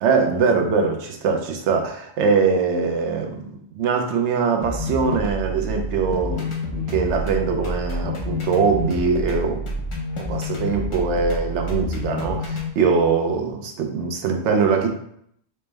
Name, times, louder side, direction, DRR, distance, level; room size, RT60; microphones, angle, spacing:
voice 1, 0.0-9.6 10.2-14.9, right 5 dB, 85° right, 3 dB, 0.9 m, -22 dB
sound 1, 4.6-12.7, left 1 dB, 35° left, 0.5 m, -28 dB
4.3 x 2.0 x 3.3 m, 0.70 s
omnidirectional pair, 1.2 m